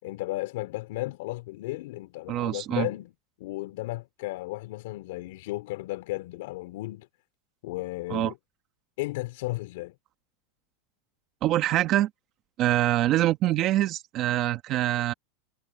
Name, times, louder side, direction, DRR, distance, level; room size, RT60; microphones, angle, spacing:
voice 1, 0.0-3.1 3.4-7.1 7.6-8.4 9.0-9.9, left 19 dB, 65° left, 3.9 m, -34 dB
voice 2, 2.3-2.9 8.1-8.3 11.4-12.1 12.6-15.1, right 14 dB, 35° right, 1.4 m, -24 dB
supercardioid pair, 155°, 0 cm